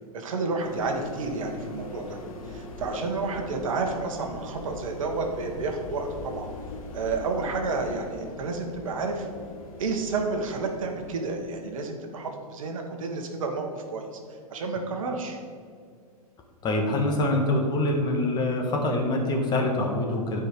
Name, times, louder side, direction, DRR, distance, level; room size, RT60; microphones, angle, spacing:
voice 1, 0.1-2.2 2.5-6.5 6.9-9.3 9.8-14.1 14.5-15.4, right 3 dB, 60° right, 3 dB, 1.3 m, -30 dB
sound 1, 0.6-11.3, left 2 dB, 60° left, 1.3 m, -41 dB
voice 2, 16.6-20.4, left 1 dB, 20° left, 1 dB, 1.5 m, -25 dB
10.5 x 4.9 x 5.1 m, 2.1 s
figure-of-eight pair, 105°, 20 cm